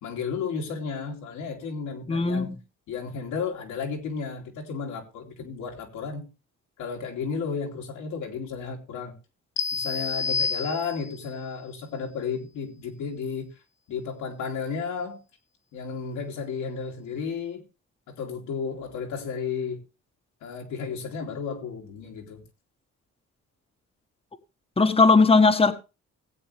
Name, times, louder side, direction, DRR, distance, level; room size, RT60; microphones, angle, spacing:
voice 1, 0.0-2.5 2.9-6.3 6.8-9.1 9.7-13.5 13.9-15.2 15.7-17.6 18.1-19.8 20.4-22.4, left 5 dB, 85° left, 3.0 m, -33 dB
voice 2, 2.1-2.6 24.8-25.7, left 4 dB, 20° left, 1.4 m, -18 dB
sound 1, 9.6-11.3, left 5 dB, 55° left, 1.9 m, -29 dB
18.0 x 8.2 x 3.4 m
cardioid pair, 90°, 30 cm